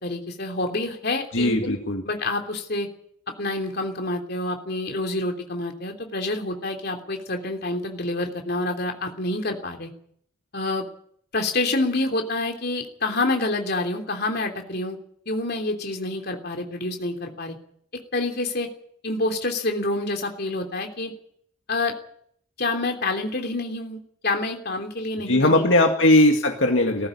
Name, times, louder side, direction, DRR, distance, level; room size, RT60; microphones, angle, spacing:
voice 1, 0.0-1.7 2.0-2.9 3.4-9.9 10.5-10.8 11.3-15.0 15.3-17.6 18.1-18.7 19.0-21.1 21.7-21.9 22.6-25.7, left 2 dB, 55° left, 3 dB, 3.2 m, -27 dB
voice 2, 1.3-2.0 25.3-27.1, left 1 dB, 75° left, 2 dB, 2.1 m, -19 dB
18.0 x 14.5 x 9.8 m, 0.67 s
head